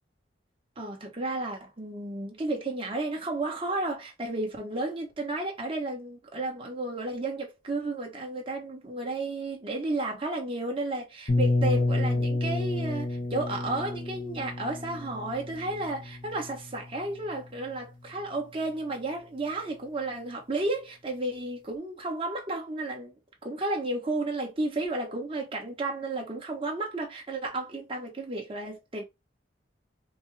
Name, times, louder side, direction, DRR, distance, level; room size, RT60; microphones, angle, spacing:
voice 1, 0.8-23.1 23.4-29.0, right 2 dB, 30° right, 1.1 m, -32 dB
sound 1, 11.3-17.1, left 2 dB, 45° left, 0.9 m, -29 dB
5.2 x 2.1 x 3.3 m
head